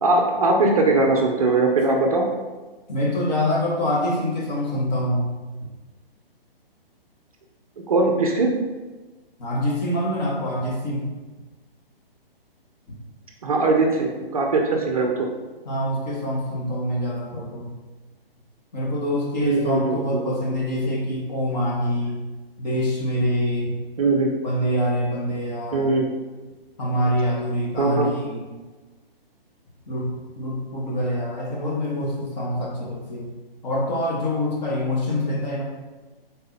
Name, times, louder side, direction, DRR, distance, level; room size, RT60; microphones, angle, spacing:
voice 1, 0.0-2.3 7.9-8.5 13.4-15.3 19.4-20.4 24.0-24.3 25.7-26.1 27.8-28.1, right 3 dB, 40° right, 1 dB, 0.4 m, -20 dB
voice 2, 2.9-5.3 9.4-11.1 12.9-13.0 15.6-17.8 18.7-22.2 22.6-23.7 24.4-26.0 26.8-28.5 29.9-33.4 33.6-35.6, equal, 45° left, -4 dB, 1.3 m, -25 dB
3.9 x 2.7 x 4.0 m, 1.3 s
hypercardioid pair, 150°, 30 cm